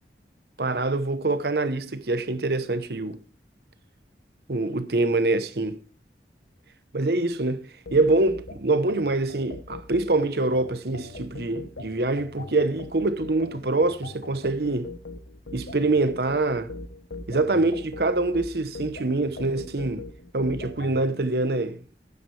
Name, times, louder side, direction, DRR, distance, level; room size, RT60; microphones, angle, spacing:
voice 1, 0.6-3.2 4.5-5.8 6.9-7.7 7.9-14.9 15.5-16.7 17.3-20.1 20.3-21.8, right 2 dB, 65° right, 0.9 m, -25 dB
sound 1, 7.9-21.0, left 3 dB, 75° left, 1.1 m, -40 dB
12.5 x 9.4 x 3.3 m
head